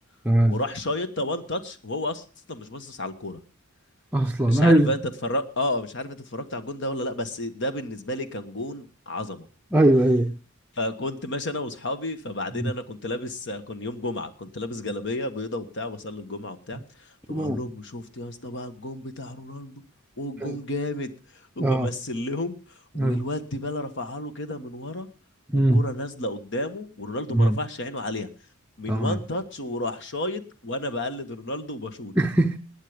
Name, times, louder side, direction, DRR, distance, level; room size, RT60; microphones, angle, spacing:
voice 1, 0.4-3.4 4.4-9.5 10.8-16.8 17.3-19.7 20.2-22.6 22.9-25.1 25.5-28.3 28.8-32.1, left 1 dB, 60° left, 1.5 m, -31 dB
voice 2, 4.1-4.9 9.7-10.4 12.5-12.7 17.3-17.6 20.4-20.6 21.6-21.9 23.0-23.2 25.5-25.9 27.3-27.6 28.9-29.2 32.2-32.6, right 1 dB, 10° right, 0.6 m, -20 dB
20.0 x 8.5 x 5.1 m
head